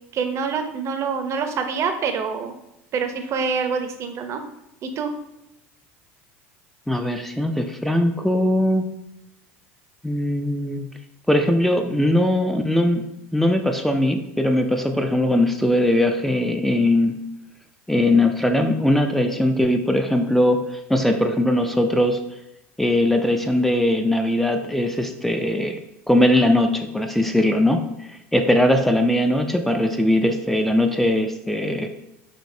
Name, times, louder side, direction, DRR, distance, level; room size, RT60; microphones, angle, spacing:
voice 1, 0.1-2.5 2.9-4.4 4.8-5.1, right 5 dB, 45° right, 7 dB, 0.6 m, -26 dB
voice 2, 6.9-8.9 10.0-10.8 11.3-13.1 13.3-17.2 17.9-20.6 20.9-22.2 22.8-25.8 26.1-27.8 28.3-31.9, left 1 dB, 5° left, 5 dB, 0.4 m, -20 dB
5.1 x 2.7 x 2.6 m, 0.88 s
hypercardioid pair, 90°, 7 cm